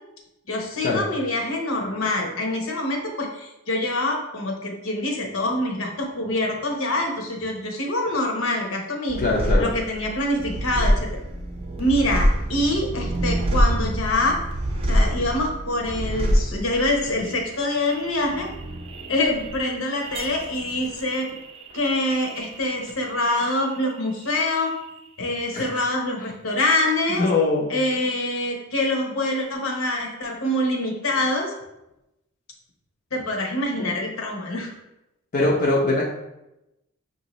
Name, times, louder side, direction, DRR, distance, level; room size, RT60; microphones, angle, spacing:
voice 1, 0.5-9.3 9.6-11.2 11.8-14.4 14.9-18.5 19.1-21.3 21.7-24.7 25.2-27.3 27.7-31.5 33.1-34.7, left 1 dB, 75° left, 1 dB, 0.9 m, -25 dB
sound 1, 9.1-24.0 24.2-25.1, equal, 30° right, 0.5 m, -26 dB
voice 2, 9.2-9.7 25.5-25.8 27.2-27.7 35.3-36.1, left 2 dB, 45° left, -4 dB, 0.5 m, -22 dB
5.9 x 2.7 x 3.0 m, 0.92 s
head